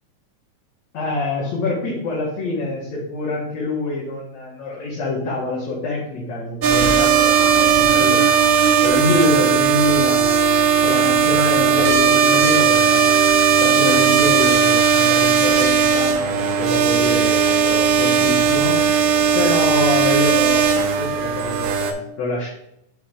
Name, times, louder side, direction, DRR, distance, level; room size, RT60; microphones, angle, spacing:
voice 1, 0.9-13.1 13.6-18.8 19.3-22.5, left 2 dB, 65° left, -7 dB, 2.5 m, -25 dB
sound 1, 6.6-21.9, right 6 dB, 80° right, 2.1 m, -17 dB
6.0 x 3.6 x 4.9 m, 0.79 s
omnidirectional pair, 3.6 m